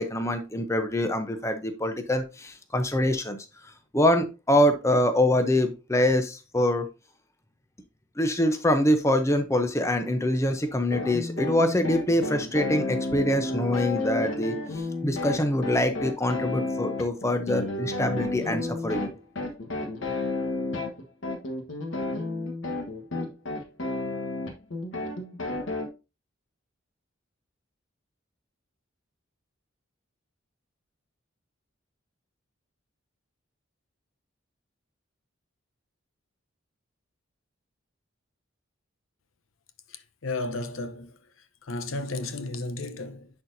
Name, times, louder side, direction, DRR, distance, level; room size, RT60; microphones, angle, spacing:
voice 1, 0.0-3.4 3.9-6.9 8.2-19.1, left 1 dB, 15° left, 0.7 m, -24 dB
sound 1, 10.9-25.9, left 2 dB, 70° left, 1.3 m, -32 dB
voice 2, 39.9-41.2 41.6-43.3, left 2 dB, 85° left, 0.8 m, -33 dB
10.0 x 4.4 x 2.7 m
head